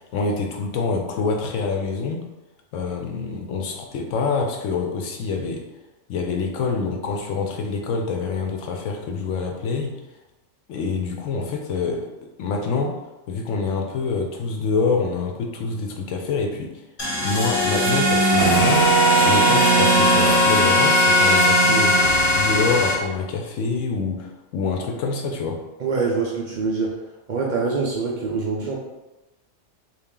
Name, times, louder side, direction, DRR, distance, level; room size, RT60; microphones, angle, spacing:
voice 1, 0.0-2.2 2.7-5.6 6.1-9.9 10.7-12.1 12.4-13.0 13.3-16.7 17.2-18.9 19.2-25.6, left 4 dB, 75° left, 3 dB, 0.9 m, -26 dB
sound 1, 17.0-22.9, equal, 30° left, 0.9 m, -18 dB
voice 2, 25.8-27.0 27.3-28.8, right 4 dB, 75° right, -2 dB, 0.4 m, -24 dB
3.4 x 2.4 x 3.6 m, 1.0 s
omnidirectional pair, 1.4 m